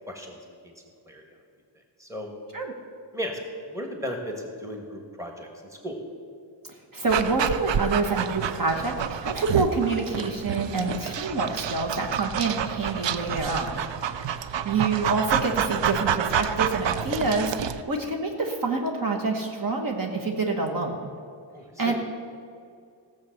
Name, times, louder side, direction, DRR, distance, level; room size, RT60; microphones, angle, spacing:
voice 1, 0.1-0.7 1.1-1.2 2.0-2.3 3.1-3.4 3.7-6.0 21.5-21.9, equal, 5° right, 1 dB, 1.6 m, -35 dB
voice 2, 6.9-13.8 14.6-21.1 21.8-21.9, right 3 dB, 45° right, 1 dB, 1.3 m, -27 dB
Dog, 7.1-17.8, right 8 dB, 70° right, 0.6 m, -28 dB
16.0 x 7.5 x 6.5 m, 2.3 s
wide cardioid pair, 160°, 45 cm